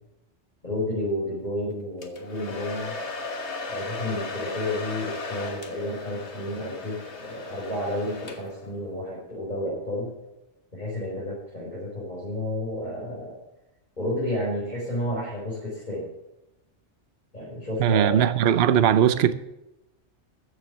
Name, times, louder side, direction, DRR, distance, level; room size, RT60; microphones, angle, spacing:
voice 1, 0.6-2.9 3.7-10.1 10.7-13.3 14.0-16.1 17.3-18.2, left 1 dB, 40° left, 5.2 m, -31 dB
Domestic sounds home sounds, 2.0-8.7, left 3 dB, 70° left, 1.8 m, -36 dB
voice 2, 17.8-19.3, right 9 dB, 65° right, 0.9 m, -19 dB
14.5 x 7.4 x 7.2 m
omnidirectional pair, 1.2 m